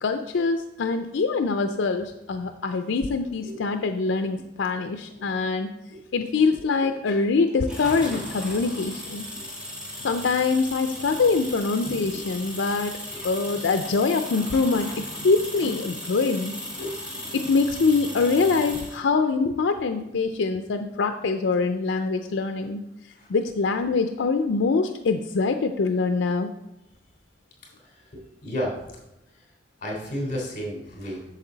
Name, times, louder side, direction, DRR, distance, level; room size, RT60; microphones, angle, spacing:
voice 1, 0.0-5.7 6.1-9.3 10.0-12.9 13.2-14.9 15.2-16.5 17.3-22.8 23.3-26.5, left 4 dB, 85° left, 7 dB, 0.5 m, -24 dB
voice 2, 3.4-3.9 5.1-5.3 5.9-6.0 8.0-8.2 9.3-9.4 12.0-12.3 13.1-13.5 16.1-16.3 16.7-17.0 23.2-23.3 27.8-28.8 29.3-29.4 29.8-31.2, equal, 45° left, -2 dB, 3.3 m, -34 dB
sound 1, 7.7-19.0, equal, 5° right, 2.0 m, -36 dB
8.3 x 6.8 x 3.9 m, 0.90 s
head